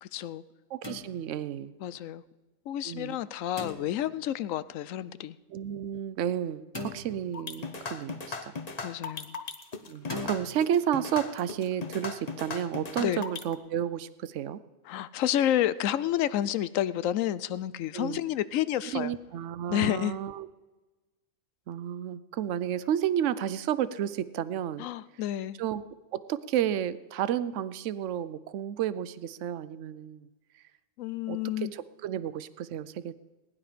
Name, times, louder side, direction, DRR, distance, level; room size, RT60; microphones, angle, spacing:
voice 1, 0.0-0.4 1.8-2.2 2.7-5.4 8.8-9.4 13.0-13.2 14.9-19.1 19.7-20.1 24.8-25.6 31.0-31.7, left 12 dB, 90° left, 16 dB, 1.0 m, -30 dB
voice 2, 0.7-1.7 2.8-3.2 5.5-8.5 9.9-14.6 17.9-18.2 18.9-20.5 21.7-24.9 25.6-25.8 26.1-30.3 31.3-33.1, right 10 dB, 70° right, 15 dB, 0.9 m, -31 dB
sound 1, 0.8-1.6 3.6-4.3 6.7-7.6 10.1-10.4, left 2 dB, 20° left, 2.0 m, -39 dB
sound 2, 7.3-13.5, left 4 dB, 35° left, 0.9 m, -37 dB
19.0 x 11.0 x 5.1 m, 1.2 s
omnidirectional pair, 1.3 m